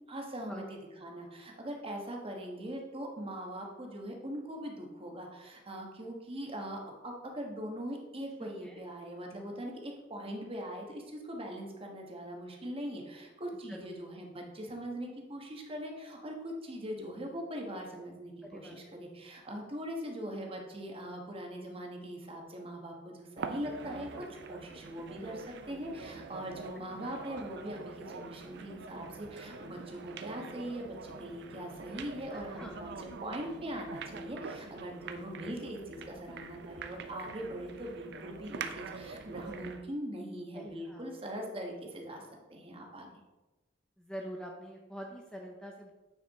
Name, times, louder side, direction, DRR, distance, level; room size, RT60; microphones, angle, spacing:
voice 1, 0.1-43.1, equal, 30° right, 1 dB, 1.2 m, -41 dB
voice 2, 8.4-8.8 13.7-13.9 18.4-18.8 32.6-32.7 40.5-41.0 44.0-45.9, equal, 5° left, 0 dB, 0.6 m, -45 dB
sound 1, 23.4-39.9, right 5 dB, 60° right, 0.5 m, -45 dB
9.1 x 4.7 x 3.6 m, 1.1 s
head